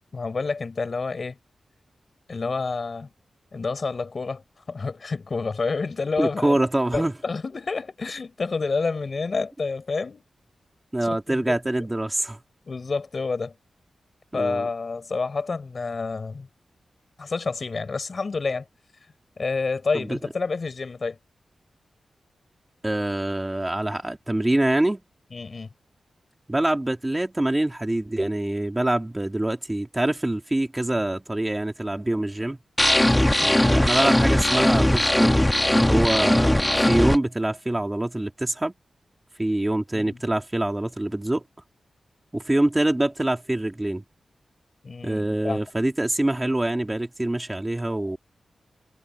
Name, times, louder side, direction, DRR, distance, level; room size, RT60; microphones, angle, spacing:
voice 1, 0.1-1.4 2.3-3.1 3.5-6.6 6.9-10.2 11.0-11.6 12.7-13.6 14.3-16.5 17.2-18.6 19.4-21.2 25.3-25.7 33.4-33.6 39.9-40.2 44.8-45.6, left 4 dB, 45° left, 4.4 m, -29 dB
voice 2, 6.2-7.1 10.9-12.4 14.3-14.7 19.9-20.2 22.8-25.0 26.5-32.6 33.4-38.7 39.4-41.4 42.3-44.0 45.0-48.2, right 1 dB, 15° right, 2.8 m, -25 dB
sound 1, 32.8-37.2, left 1 dB, 10° left, 1.7 m, -19 dB
wide cardioid pair, 100°, 0 cm